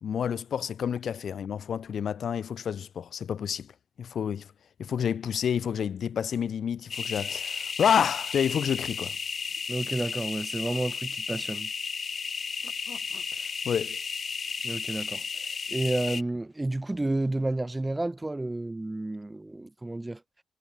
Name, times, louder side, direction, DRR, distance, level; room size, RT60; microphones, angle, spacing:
voice 1, 0.0-3.7 4.0-4.5 4.8-9.2 12.6-13.2 13.7-14.0, left 8 dB, 60° left, 1.8 m, -29 dB
sound 1, 6.9-16.2, left 5 dB, 45° left, 4.5 m, -34 dB
voice 2, 9.7-11.7 14.6-15.2 15.7-20.2, right 2 dB, 15° right, 4.2 m, -31 dB
cardioid pair, 110°, 0 cm